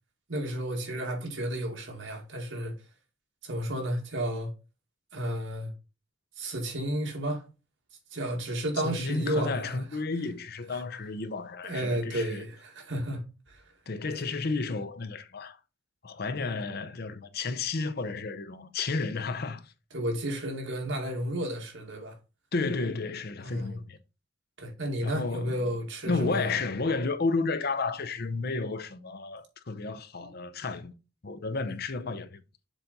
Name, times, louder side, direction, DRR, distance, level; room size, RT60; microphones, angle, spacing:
voice 1, 0.3-2.7 3.4-4.5 5.1-5.7 6.4-7.5 8.1-9.8 10.7-10.8 11.6-13.6 14.1-14.2 19.9-22.1 23.4-23.8 24.6-26.5 30.2-30.3, right 1 dB, 70° right, 2.5 m, -32 dB
voice 2, 8.8-12.4 13.9-15.6 16.0-19.7 22.5-24.0 25.0-25.7 26.1-30.9 31.2-32.4, left 3 dB, 50° left, 0.7 m, -32 dB
7.1 x 4.0 x 5.3 m
head